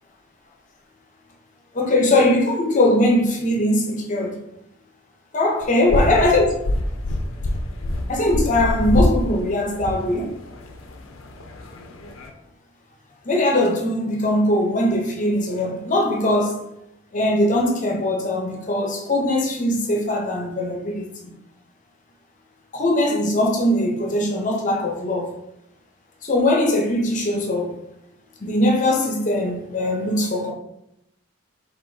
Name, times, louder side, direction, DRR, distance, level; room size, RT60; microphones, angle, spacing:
voice 1, 1.7-4.4 5.3-6.5 8.1-10.3 13.2-16.6 17.1-21.1 22.7-25.3 26.2-27.8 28.4-30.5, left 1 dB, 35° left, 0.7 m, -20 dB
sound 1, 5.6-12.3, left 1 dB, 75° left, 0.6 m, -26 dB
4.7 x 4.0 x 2.7 m
head